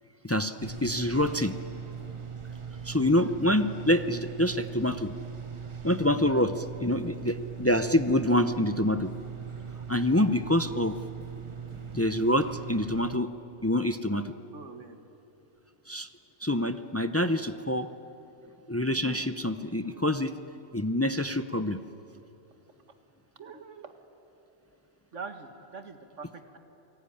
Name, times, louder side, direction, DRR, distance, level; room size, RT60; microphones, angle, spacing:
voice 1, 0.2-1.5 2.8-5.1 5.8-9.1 9.9-10.9 11.7-13.3 13.6-14.3 15.9-16.1 16.4-17.9 18.7-20.3 20.7-21.8, left 1 dB, 25° left, 10 dB, 0.3 m, -26 dB
sound 1, 0.6-13.2, right 7 dB, 25° right, 0.9 m, -40 dB
voice 2, 10.1-10.4 14.5-15.0 23.4-23.9 25.1-26.6, right 4 dB, 65° right, 7 dB, 2.0 m, -43 dB
28.0 x 19.0 x 9.9 m, 2.9 s
omnidirectional pair, 1.4 m